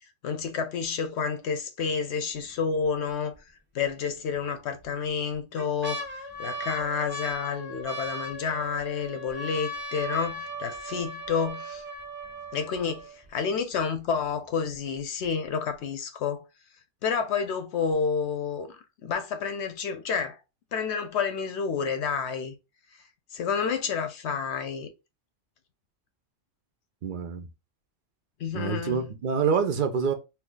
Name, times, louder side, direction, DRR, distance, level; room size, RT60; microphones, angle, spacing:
voice 1, 0.2-3.3 3.7-11.8 12.5-16.4 17.0-18.7 19.0-20.4 20.7-22.5 23.3-24.9 28.4-29.1, left 6 dB, 65° left, 0.8 m, -29 dB
sound 1, 2.4-2.8 3.3-3.4 4.3-4.8 5.3-13.3 14.0-14.1 14.2-14.7 15.2-15.3, right 1 dB, 15° right, 0.5 m, -38 dB
voice 2, 27.0-27.5 28.5-30.1, right 6 dB, 60° right, 0.5 m, -26 dB
2.8 x 2.3 x 3.7 m
omnidirectional pair, 1.3 m